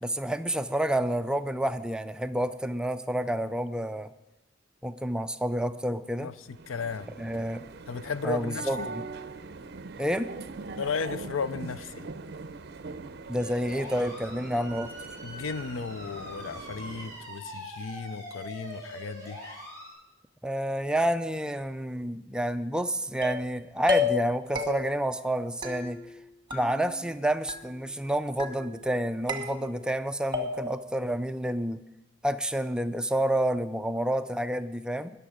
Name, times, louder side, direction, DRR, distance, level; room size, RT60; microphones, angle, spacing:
voice 1, 0.0-4.1 4.8-6.3 7.2-7.6 8.2-9.0 10.0-10.3 13.3-14.9 20.4-26.0 26.5-31.8 32.2-35.1, right 1 dB, 5° right, 11 dB, 0.3 m, -29 dB
sound 1, 6.5-17.3, right 3 dB, 55° right, 0.5 m, -42 dB
voice 2, 6.7-7.1 7.9-8.9 10.8-12.1 15.2-19.6, left 5 dB, 90° left, 15 dB, 0.5 m, -35 dB
sound 2, 13.4-19.9, equal, 15° left, 5.1 m, -43 dB
sound 3, 23.2-23.5 23.9-24.3 24.6-25.1 25.6-26.2 26.5-27.2 27.5-28.0 28.4-28.9 29.3-30.0 30.3-30.9, left 4 dB, 25° right, 1.4 m, -32 dB
20.5 x 6.9 x 5.0 m, 0.94 s
head